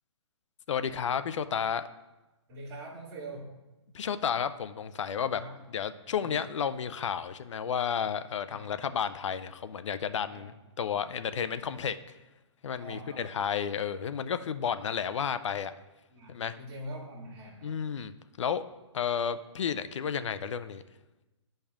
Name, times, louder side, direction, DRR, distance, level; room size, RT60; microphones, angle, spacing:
voice 1, 0.7-1.8 3.9-5.4 5.7-10.5 10.8-12.0 12.6-15.7 16.3-16.5 17.6-18.1 18.4-18.6 18.9-20.8, left 7 dB, 85° left, 12 dB, 0.4 m, -32 dB
voice 2, 2.5-3.5 5.3-5.6 6.2-6.3 8.5-8.7 10.3-10.5 12.8-13.4 14.6-14.8 16.1-17.8, right 1 dB, 25° right, -7 dB, 2.2 m, -44 dB
10.0 x 5.3 x 2.4 m, 1.1 s
hypercardioid pair, 150°, 15 cm